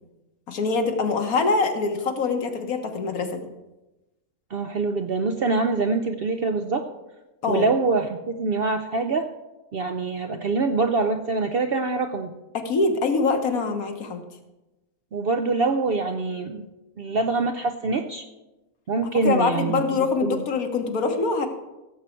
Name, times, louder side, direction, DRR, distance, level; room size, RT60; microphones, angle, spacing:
voice 1, 0.5-3.4 7.4-7.7 12.5-14.2 19.1-21.5, left 4 dB, 70° left, 5 dB, 1.6 m, -24 dB
voice 2, 4.5-6.8 7.5-9.3 9.7-12.3 15.1-16.7 17.0-18.3 18.9-20.4, right 3 dB, 60° right, 6 dB, 0.6 m, -25 dB
16.5 x 7.5 x 4.5 m, 1.0 s
omnidirectional pair, 1.6 m